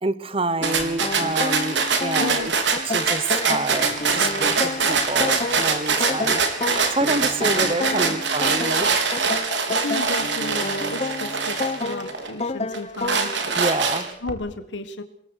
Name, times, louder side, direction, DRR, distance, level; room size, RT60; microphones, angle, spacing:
voice 1, 0.0-2.5 2.8-6.4 6.9-8.9 13.5-14.1, right 2 dB, 30° right, 15 dB, 1.1 m, -27 dB
sound 1, 0.6-13.4, left 3 dB, 35° left, 0.9 m, -31 dB
sound 2, 0.6-12.3 12.7-14.3, right 5 dB, 75° right, 4.1 m, -23 dB
voice 2, 2.2-2.5 7.5-8.2 9.8-13.3 14.2-15.0, left 2 dB, 75° left, 9 dB, 1.5 m, -33 dB
27.5 x 22.0 x 6.5 m, 0.76 s
head